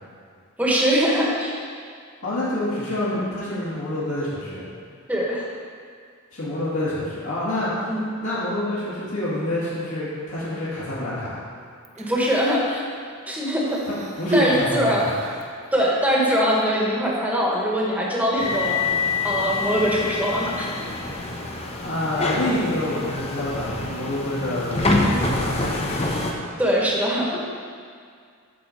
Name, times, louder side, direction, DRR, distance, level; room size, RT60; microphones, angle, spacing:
voice 1, 0.6-1.5 5.1-5.5 7.9-8.0 11.9-12.8 13.3-13.8 14.3-15.1 15.7-18.8 19.2-21.0 26.6-27.5, equal, 5° right, -4 dB, 1.2 m, -22 dB
voice 2, 2.2-4.7 6.3-7.7 8.2-11.4 14.2-15.2 21.8-26.1, left 1 dB, 75° left, -10 dB, 2.1 m, -27 dB
Human voice, 11.8-12.7 13.6-15.6 16.5-16.6, equal, 35° right, 0.6 m, -29 dB
sound 1, 18.4-26.3, left 3 dB, 30° left, 0.7 m, -26 dB
8.5 x 4.2 x 6.4 m, 2.2 s
head